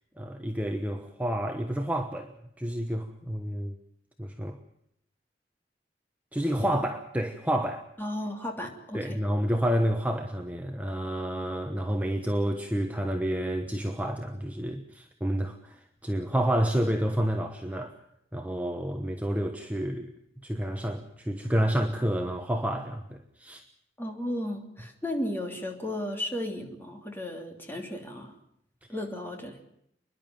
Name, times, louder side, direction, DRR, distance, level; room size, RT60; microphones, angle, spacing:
voice 1, 0.2-2.3 2.6-3.8 4.2-4.6 6.3-7.9 8.9-17.9 18.3-20.1 20.4-23.6, equal, 10° right, 4 dB, 1.1 m, -29 dB
voice 2, 8.0-9.2 24.0-28.3 28.9-29.6, left 1 dB, 10° left, 2 dB, 3.1 m, -34 dB
29.5 x 11.0 x 9.3 m, 0.74 s
head